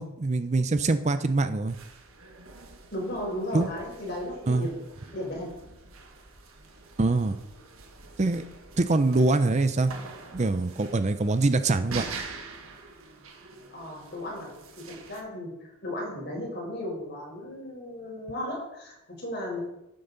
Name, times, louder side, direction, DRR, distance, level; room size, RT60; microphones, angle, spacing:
voice 1, 0.0-1.8 3.5-3.7 4.5-4.7 7.0-7.4 8.2-8.4 8.8-9.9 10.3-12.0, right 3 dB, 35° right, 11 dB, 0.5 m, -24 dB
sound 1, 1.7-15.2, right 4 dB, 85° right, 1.5 m, -45 dB
voice 2, 2.9-4.8 5.1-5.5 13.7-14.5 14.9-15.5 15.8-19.6, left 1 dB, 50° left, -2 dB, 4.4 m, -35 dB
12.5 x 7.7 x 4.0 m, 0.86 s
head